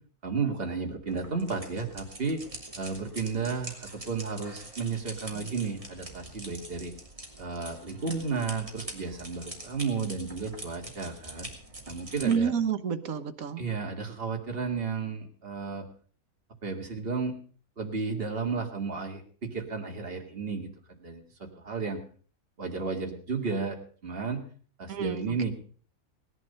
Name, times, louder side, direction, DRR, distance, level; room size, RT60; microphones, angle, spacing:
voice 1, 0.2-2.4 2.8-6.9 7.4-11.5 11.9-12.5 13.6-15.9 16.6-17.4 17.8-20.7 21.0-22.0 22.6-24.4 24.8-25.5, right 4 dB, 45° right, 2 dB, 2.3 m, -33 dB
sound 1, 1.1-12.3, right 2 dB, 25° right, 2.7 m, -44 dB
voice 2, 12.2-13.7 24.9-25.5, right 7 dB, 85° right, 9 dB, 1.5 m, -29 dB
18.0 x 11.0 x 5.5 m, 0.43 s
omnidirectional pair, 1.4 m